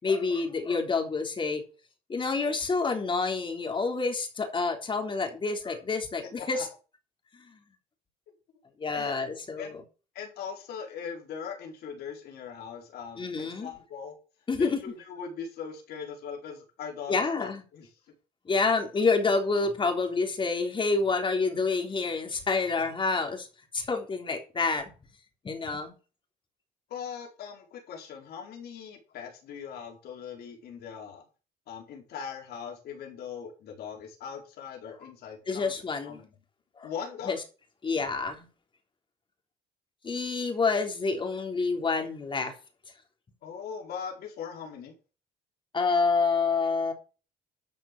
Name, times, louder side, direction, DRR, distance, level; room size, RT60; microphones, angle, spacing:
voice 1, 0.0-1.6 2.1-6.7 7.3-7.6 8.8-9.8 13.2-13.7 14.5-14.8 17.1-17.6 18.5-23.5 23.7-24.9 25.4-25.9 34.9-35.0 35.5-36.2 36.8-36.9 37.2-37.4 37.8-38.5 40.0-42.5 45.7-46.9, left 4 dB, 30° left, 3.5 m, -28 dB
voice 2, 10.1-14.1 14.6-17.9 22.7-22.8 26.9-31.2 31.7-35.7 36.0-36.3 36.8-37.3 43.4-44.9, left 7 dB, 70° left, 4.5 m, -40 dB
12.5 x 6.0 x 6.1 m
cardioid pair, 110°, 17 cm